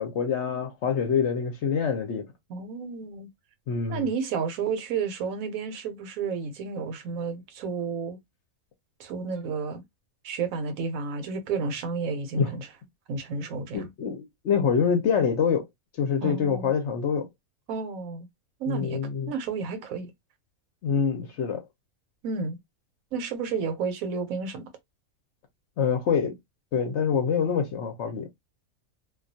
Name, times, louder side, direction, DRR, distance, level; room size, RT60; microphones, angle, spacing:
voice 1, 0.0-2.3 3.7-4.1 12.4-12.5 13.7-15.7 16.0-17.3 18.7-19.3 20.8-21.6 25.8-26.3 26.7-28.3, left 6 dB, 65° left, 0.8 m, -25 dB
voice 2, 2.5-3.3 3.9-8.2 9.0-9.8 10.2-12.7 13.1-13.9 16.2-16.7 17.7-18.3 18.6-19.0 19.3-20.1 22.2-22.6 23.1-24.6, right 5 dB, 75° right, 1.0 m, -31 dB
2.3 x 2.3 x 2.6 m
omnidirectional pair, 1.5 m